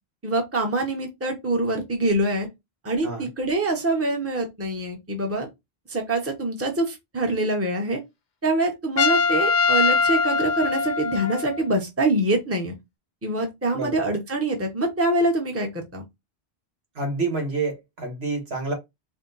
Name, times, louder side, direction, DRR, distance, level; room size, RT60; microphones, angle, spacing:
voice 1, 0.2-2.5 2.8-5.5 5.9-8.0 8.4-12.7 13.2-16.0, right 2 dB, 15° right, 1.0 m, -25 dB
Trumpet, 9.0-11.6, left 4 dB, 50° left, 0.8 m, -22 dB
voice 2, 13.7-14.1 16.9-18.7, right 3 dB, 75° right, 1.8 m, -28 dB
4.5 x 2.2 x 4.0 m
omnidirectional pair, 1.1 m